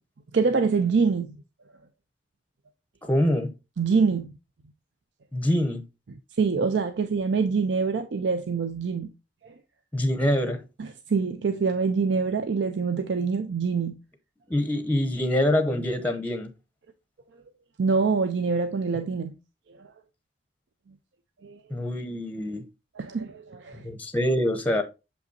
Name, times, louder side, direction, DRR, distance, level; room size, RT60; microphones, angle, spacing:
voice 1, 0.3-1.3 3.8-4.3 6.4-9.1 9.4-9.5 10.8-14.0 17.8-19.3 19.8-19.9 21.4-21.6 23.0-23.9, right 5 dB, 80° right, 0.5 m, -25 dB
voice 2, 3.0-3.5 5.3-5.8 9.9-10.6 14.5-16.5 21.7-22.6 23.7-24.8, left 1 dB, 10° left, 0.6 m, -25 dB
6.8 x 5.3 x 2.6 m
head